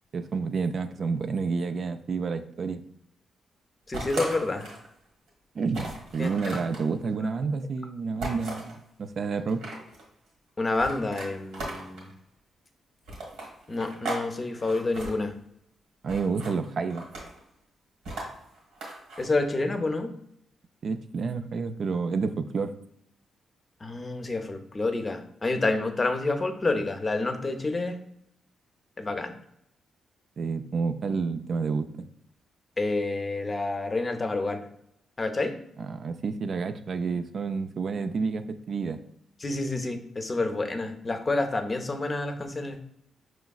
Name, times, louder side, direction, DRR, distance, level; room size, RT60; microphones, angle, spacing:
voice 1, 0.1-2.8 5.5-9.6 16.0-17.1 20.8-22.7 30.4-32.1 35.8-39.0, right 4 dB, 60° right, 8 dB, 0.3 m, -29 dB
voice 2, 3.9-4.7 6.2-6.3 10.6-12.1 13.7-15.3 19.2-20.1 23.8-28.0 29.0-29.3 32.8-34.6 35.2-35.6 39.4-42.8, left 2 dB, 35° left, 7 dB, 0.6 m, -28 dB
sound 1, 3.9-4.9 5.3-5.4 5.7-6.8 8.2-8.8 9.4-10.0 10.7-12.1 13.1-14.2 14.5-15.1 16.1-16.5 16.9-17.4 18.0-19.2, right 2 dB, 85° right, 1.5 m, -37 dB
5.0 x 3.1 x 2.3 m, 0.75 s
supercardioid pair, 60°, 0 cm